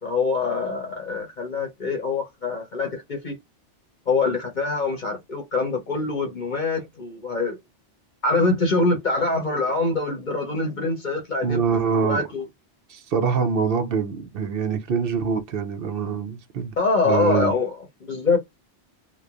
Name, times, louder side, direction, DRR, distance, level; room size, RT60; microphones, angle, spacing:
voice 1, 0.0-3.3 4.1-7.6 8.2-11.6 12.0-12.4 16.8-17.8 18.1-18.4, left 3 dB, 45° left, 0.8 m, -24 dB
voice 2, 11.4-12.2 12.9-16.7 17.0-17.5, right 6 dB, 60° right, 0.7 m, -24 dB
2.9 x 2.1 x 2.4 m
omnidirectional pair, 1.2 m